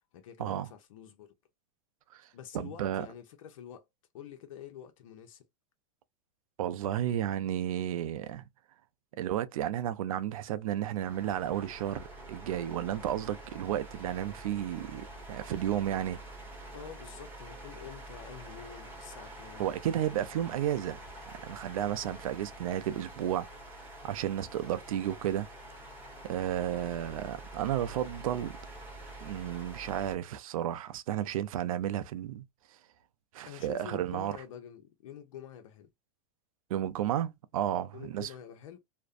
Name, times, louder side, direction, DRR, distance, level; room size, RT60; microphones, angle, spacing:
voice 1, 0.1-1.3 2.3-3.9 4.1-5.5 9.1-9.2 16.7-19.7 33.4-35.9 37.9-38.8, left 9 dB, 80° left, 0.6 m, -47 dB
voice 2, 2.5-3.1 6.6-8.4 9.2-16.2 19.6-21.0 21.4-23.5 23.8-25.5 26.3-28.6 29.2-32.4 33.3-34.3 36.7-38.3, right 11 dB, 90° right, 0.4 m, -32 dB
sound 1, 11.0-30.2, right 1 dB, 10° right, 0.9 m, -47 dB
2.5 x 2.1 x 2.4 m
supercardioid pair, 145°, 17 cm